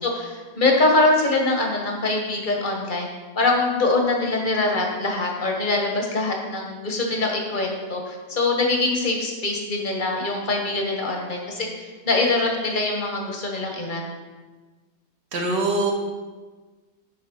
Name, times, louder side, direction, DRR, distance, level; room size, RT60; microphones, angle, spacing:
voice 1, 0.0-3.1 3.4-14.0, left 2 dB, 35° left, 1 dB, 1.1 m, -23 dB
voice 2, 15.3-15.9, right 2 dB, 85° right, 0 dB, 2.0 m, -23 dB
10.0 x 5.2 x 4.1 m, 1.3 s
omnidirectional pair, 1.8 m